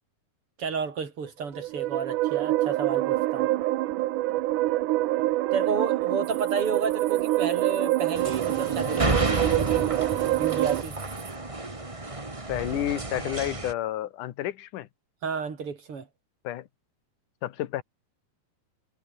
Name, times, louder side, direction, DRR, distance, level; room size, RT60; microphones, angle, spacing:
voice 1, 0.6-3.5 5.5-9.9 10.4-11.0 15.2-16.1, right 5 dB, 40° right, 4.1 m, -31 dB
sound 1, 1.4-10.8, right 17 dB, 75° right, 2.1 m, -26 dB
sound 2, 6.2-11.4, right 10 dB, 55° right, 2.8 m, -47 dB
sound 3, 8.1-13.7, right 2 dB, 15° right, 1.2 m, -31 dB
voice 2, 12.5-14.9 16.4-16.7 17.4-17.8, left 13 dB, 70° left, 2.6 m, -30 dB
omnidirectional pair, 3.9 m